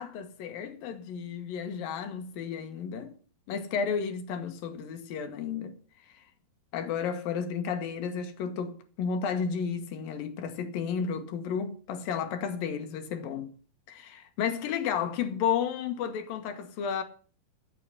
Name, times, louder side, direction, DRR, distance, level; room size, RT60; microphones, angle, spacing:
voice 1, 0.0-3.1 3.5-5.8 6.7-13.5 13.9-17.0, left 7 dB, 70° left, 3.0 m, -32 dB
14.0 x 6.8 x 7.7 m
omnidirectional pair, 4.3 m